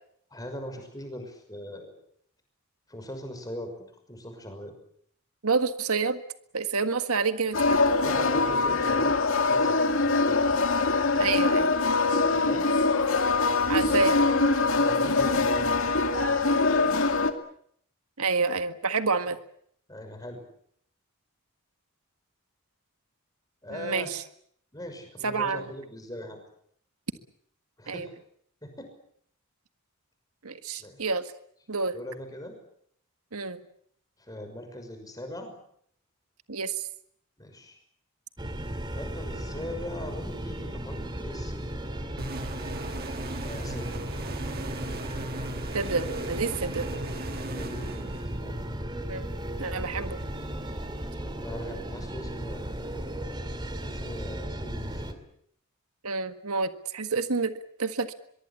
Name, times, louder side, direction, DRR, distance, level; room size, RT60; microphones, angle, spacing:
voice 1, 0.3-1.9 2.9-3.7 4.1-4.7 8.0-10.0 10.2-10.4 12.3-12.6 14.6-15.9 19.9-20.4 23.6-24.1 24.7-26.4 27.8-28.1 28.6-28.9 30.8-31.1 31.9-32.6 34.2-35.5 37.4-37.8 38.9-41.8 43.4-44.0 47.4-48.1 48.4-48.8 51.4-52.7 53.9-55.2, left 1 dB, 15° left, 6 dB, 6.1 m, -40 dB
voice 2, 5.4-6.2 6.5-7.9 11.2-11.7 13.7-14.1 18.2-19.4 23.7-24.2 25.2-25.6 27.9-28.1 30.4-31.3 31.7-32.0 33.3-33.6 36.5-36.9 45.7-46.9 49.1-49.3 49.6-50.2 56.0-58.1, right 4 dB, 80° right, 9 dB, 1.7 m, -28 dB
sound 1, 7.5-17.3, left 3 dB, 65° left, 2.4 m, -23 dB
sound 2, 38.4-55.1, right 1 dB, 20° right, 2.4 m, -35 dB
sound 3, 42.2-48.7, right 2 dB, 45° right, 1.6 m, -38 dB
23.5 x 23.5 x 8.5 m, 0.67 s
head